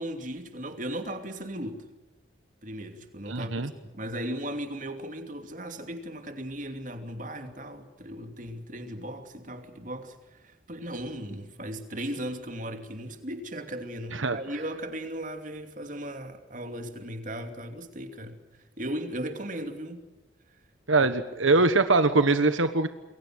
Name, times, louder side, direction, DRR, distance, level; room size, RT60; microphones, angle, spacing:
voice 1, 0.0-1.8 2.6-18.4 18.8-20.1 21.0-21.1, right 1 dB, 40° right, 7 dB, 2.8 m, -37 dB
voice 2, 3.3-3.7 14.1-14.4 20.9-22.9, right 3 dB, 85° right, 10 dB, 1.4 m, -22 dB
28.5 x 23.0 x 6.4 m, 1.1 s
head